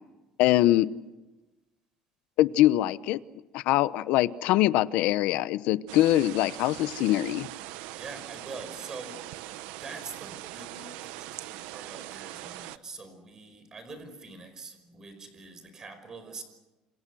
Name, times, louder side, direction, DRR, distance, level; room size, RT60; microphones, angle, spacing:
voice 1, 0.4-0.9 2.4-3.2 3.5-7.5, left 15 dB, 70° left, 15 dB, 0.9 m, -23 dB
sound 1, 5.9-12.8, right 16 dB, 85° right, 0.9 m, -41 dB
voice 2, 8.0-16.4, right 3 dB, 25° right, 9 dB, 5.3 m, -44 dB
28.0 x 28.0 x 6.3 m, 1.1 s
cardioid pair, 160°, 2 cm